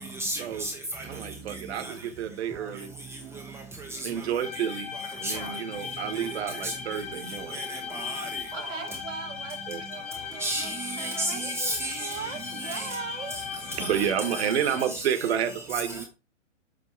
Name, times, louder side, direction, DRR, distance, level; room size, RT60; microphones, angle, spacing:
voice 1, 0.2-1.0 5.2-5.5 6.6-6.7 7.5-8.8 10.4-12.3 12.6-12.9 13.8-14.1 14.3-14.4 14.9-15.0 15.9-16.0, right 1 dB, 5° right, 0.7 m, -33 dB
voice 2, 1.0-2.9 4.0-4.9 5.2-7.6 9.7-9.8 13.8-16.0, right 9 dB, 55° right, 1.4 m, -30 dB
sound 1, 4.4-14.9, left 6 dB, 20° left, 0.8 m, -38 dB
voice 3, 8.5-13.4, right 6 dB, 75° right, 1.4 m, -40 dB
7.7 x 4.5 x 4.5 m
hypercardioid pair, 130°, 38 cm